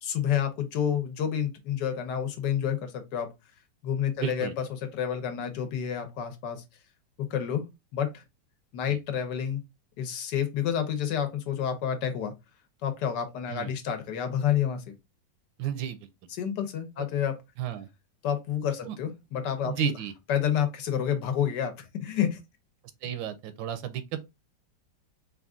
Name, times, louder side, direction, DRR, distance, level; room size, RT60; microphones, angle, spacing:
voice 1, 0.0-3.3 3.8-6.6 7.3-7.6 7.9-8.2 8.7-9.6 10.0-12.3 12.8-14.9 16.4-17.4 18.2-19.9 20.3-22.4, left 9 dB, 70° left, 1.4 m, -29 dB
voice 2, 4.2-4.5 8.9-9.0 13.5-13.7 15.6-16.1 17.0-17.1 17.6-17.9 18.8-19.0 19.7-20.1 23.0-24.2, right 10 dB, 90° right, 1.4 m, -33 dB
4.0 x 2.5 x 3.5 m
omnidirectional pair, 2.0 m